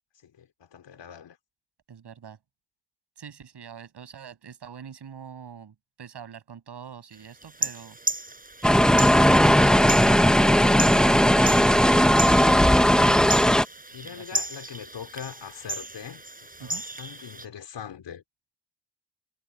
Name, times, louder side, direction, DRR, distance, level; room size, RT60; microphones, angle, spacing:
voice 1, 0.2-1.4 13.9-18.2, left 8 dB, 90° left, 4.0 m, -42 dB
voice 2, 1.9-2.4 3.2-8.0 13.9-14.4 16.6-16.8, right 7 dB, 70° right, 7.0 m, -44 dB
sound 1, 7.4-17.5, right 2 dB, 20° right, 7.2 m, -34 dB
sound 2, 8.6-13.7, equal, ahead, 0.9 m, -18 dB
wide cardioid pair, 110°, 42 cm